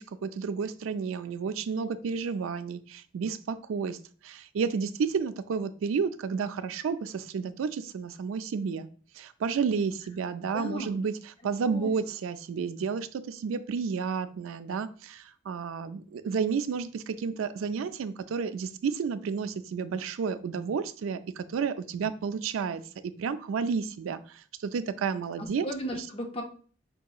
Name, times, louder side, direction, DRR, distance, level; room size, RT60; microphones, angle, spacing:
voice 1, 0.0-4.0 4.2-8.9 9.1-11.2 11.4-25.7 25.9-26.0, right 5 dB, 85° right, 13 dB, 0.3 m, -31 dB
voice 2, 10.5-10.9 11.7-11.9 25.6-26.4, equal, 30° left, 3 dB, 0.6 m, -35 dB
5.2 x 2.8 x 2.3 m, 0.42 s
head